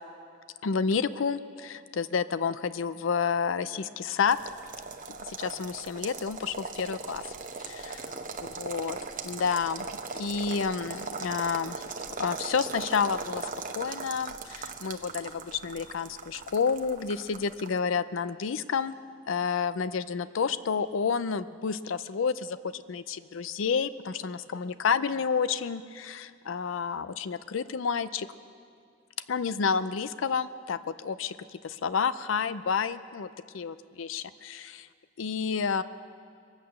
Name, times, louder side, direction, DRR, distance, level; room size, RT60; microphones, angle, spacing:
voice 1, 0.6-4.4 5.3-7.3 7.6-8.0 8.4-9.0 9.2-9.9 10.1-11.8 12.2-13.5 13.8-19.0 19.3-28.3 29.3-31.4 31.6-33.3 33.5-34.8 35.2-35.8, left 6 dB, 75° left, 14 dB, 0.5 m, -30 dB
sound 1, 4.3-17.8, right 4 dB, 45° right, 0.9 m, -39 dB
22.5 x 8.7 x 6.7 m, 2.2 s
head